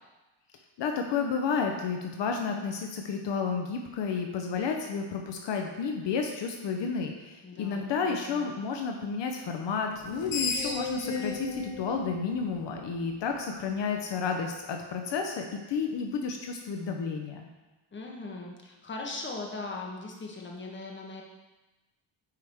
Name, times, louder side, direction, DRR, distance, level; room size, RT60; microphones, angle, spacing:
voice 1, 0.8-17.5, left 5 dB, 65° left, 3 dB, 0.8 m, -31 dB
voice 2, 7.4-8.4 17.9-21.2, left 3 dB, 25° left, 0 dB, 1.2 m, -39 dB
Screech, 10.0-13.2, left 4 dB, 80° left, 1.2 m, -34 dB
9.3 x 4.9 x 3.6 m, 1.1 s
cardioid pair, 115°, 46 cm